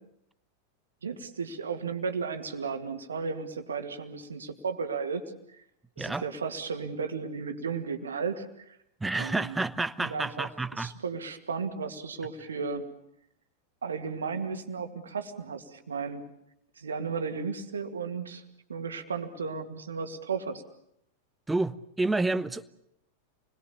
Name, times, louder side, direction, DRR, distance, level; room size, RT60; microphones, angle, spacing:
voice 1, 1.0-5.2 6.0-8.8 9.1-9.6 10.0-12.8 13.8-16.2 16.8-18.4 18.7-20.6, right 5 dB, 70° right, 2.3 m, -34 dB
voice 2, 9.0-10.9 21.5-22.6, right 2 dB, 10° right, 0.9 m, -29 dB
29.0 x 21.5 x 7.2 m
figure-of-eight pair, 90°, 0 cm